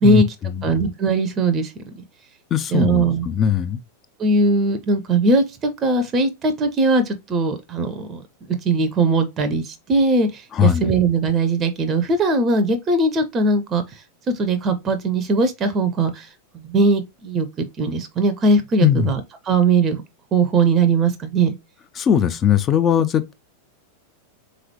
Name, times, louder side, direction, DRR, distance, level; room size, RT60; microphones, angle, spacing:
voice 1, 0.0-0.7 2.5-3.8 10.5-10.9 18.8-19.1 21.9-23.3, left 9 dB, 25° left, 0.5 m, -20 dB
voice 2, 0.6-1.7 2.7-3.3 4.2-8.2 8.6-13.8 14.3-16.2 16.6-19.2 19.5-20.0 20.3-21.5, right 3 dB, 25° right, 0.6 m, -19 dB
3.7 x 3.2 x 3.0 m
figure-of-eight pair, 90°, 0 cm